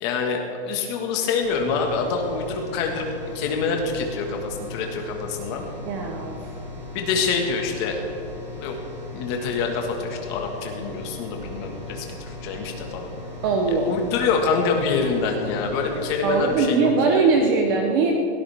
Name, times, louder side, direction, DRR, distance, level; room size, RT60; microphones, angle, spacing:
voice 1, 0.0-3.1 3.3-5.7 6.9-8.0 8.6-8.8 9.1-13.1 13.7-17.3, left 5 dB, 25° left, 2 dB, 1.7 m, -26 dB
sound 1, 1.4-16.6, left 2 dB, 35° right, 3.6 m, -38 dB
voice 2, 5.9-6.4 13.4-13.9 16.2-18.1, right 4 dB, 20° right, 2 dB, 0.8 m, -21 dB
22.0 x 18.0 x 3.5 m, 2.6 s
hypercardioid pair, 175°, 34 cm